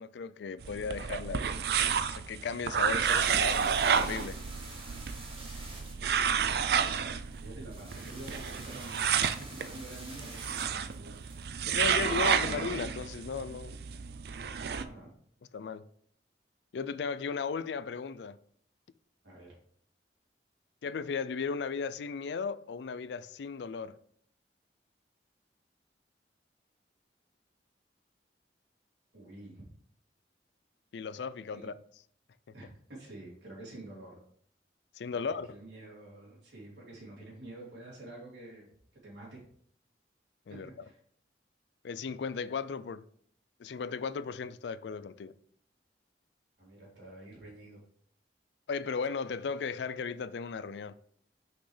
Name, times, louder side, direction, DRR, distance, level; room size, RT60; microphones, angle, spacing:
voice 1, 0.0-1.4 2.1-4.4 11.7-13.8 15.5-15.8 16.7-18.4 20.8-24.0 30.9-31.7 35.0-35.5 40.5-40.7 41.8-43.0 43.6-45.3 48.7-50.9, left 5 dB, 75° left, 0.4 m, -36 dB
sound 1, 0.6-14.8, right 7 dB, 60° right, 0.4 m, -31 dB
sound 2, 3.0-12.4, right 2 dB, 30° right, 1.9 m, -49 dB
voice 2, 6.0-6.7 7.4-9.1 9.5-11.5 11.9-12.5 14.7-15.1 19.2-19.6 29.1-29.6 31.5-31.7 32.5-34.2 35.5-38.7 39.0-39.4 40.5-41.0 46.6-47.8, right 1 dB, 80° right, 3.1 m, -48 dB
6.1 x 6.0 x 3.3 m
head